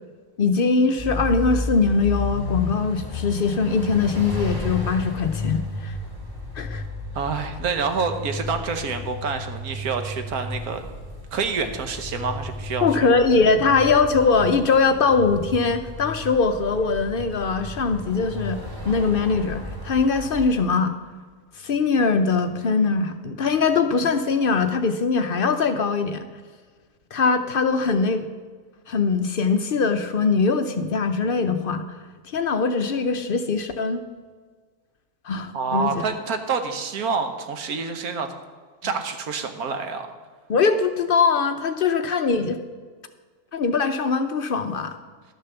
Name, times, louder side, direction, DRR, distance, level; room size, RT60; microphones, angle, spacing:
voice 1, 0.4-6.0 6.5-6.8 12.8-18.6 18.8-20.9 21.6-26.3 27.1-28.3 28.9-31.8 32.2-34.0 35.2-35.9 40.5-42.6 43.5-45.0, left 4 dB, 60° left, 8 dB, 0.5 m, -21 dB
sound 1, 1.0-20.5, left 1 dB, 15° right, 1.8 m, -33 dB
voice 2, 7.1-10.8 11.3-13.1 35.5-38.3 38.8-40.1, right 5 dB, 75° right, 7 dB, 1.5 m, -27 dB
11.5 x 6.7 x 6.8 m, 1.5 s
omnidirectional pair, 1.6 m